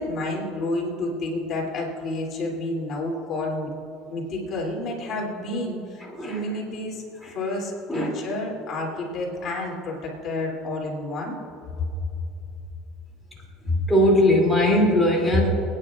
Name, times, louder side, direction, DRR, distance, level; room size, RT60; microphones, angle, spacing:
voice 1, 0.0-3.7 4.1-11.4 11.8-11.9, left 2 dB, 45° left, -2 dB, 2.8 m, -30 dB
voice 2, 13.7-15.5, left 1 dB, ahead, -4 dB, 2.7 m, -20 dB
29.0 x 9.7 x 2.4 m, 2.8 s
supercardioid pair, 125°, 0 cm